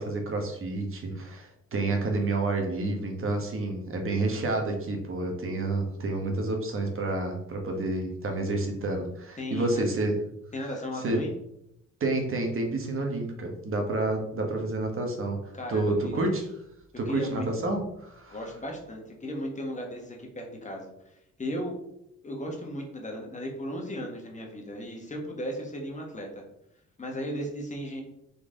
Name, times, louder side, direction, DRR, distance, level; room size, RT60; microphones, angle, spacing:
voice 1, 0.0-10.2 11.0-11.2 12.0-15.4 15.7-16.4 17.0-18.4, right 2 dB, 45° right, 3 dB, 1.2 m, -29 dB
voice 2, 9.4-9.8 10.5-11.3 15.5-16.2 17.0-17.5 18.3-21.1 21.4-21.8 22.2-26.4 27.0-28.0, equal, 25° left, 0 dB, 1.3 m, -36 dB
4.0 x 3.2 x 3.7 m, 0.78 s
cardioid pair, 90°, 30 cm